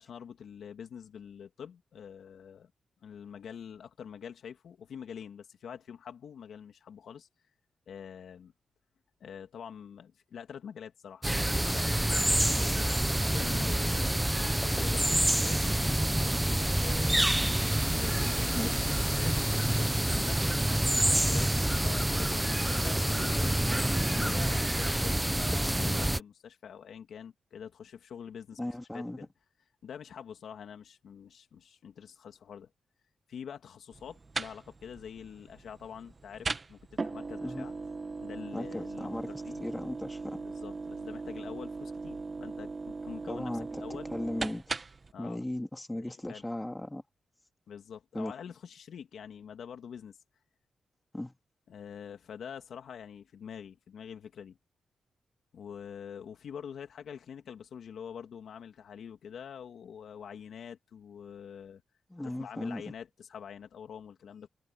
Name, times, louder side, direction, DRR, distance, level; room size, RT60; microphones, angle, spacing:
voice 1, 0.0-2.7 3.0-7.3 7.9-8.5 9.2-15.6 16.8-17.4 17.6-29.3 29.8-32.7 33.3-37.7 38.2-39.6 40.2-44.1 45.1-45.4 46.0-46.4 47.7-50.2 51.7-54.6 55.5-61.8 62.2-64.5, left 7 dB, 75° left, 2.8 m, -46 dB
sound 1, 11.1-18.4, right 8 dB, 70° right, 7.3 m, -63 dB
sound 2, 11.2-26.2, right 1 dB, 10° right, 1.0 m, -27 dB
voice 2, 28.6-29.3 37.4-37.7 38.5-39.3 39.6-40.4 43.3-43.8 44.1-44.6 45.2-47.0 48.1-48.3 51.1-51.4 62.1-62.9, left 1 dB, 10° left, 2.8 m, -37 dB
sound 3, 33.9-45.1, right 3 dB, 35° right, 1.4 m, -39 dB
cardioid pair, 100°, 0 cm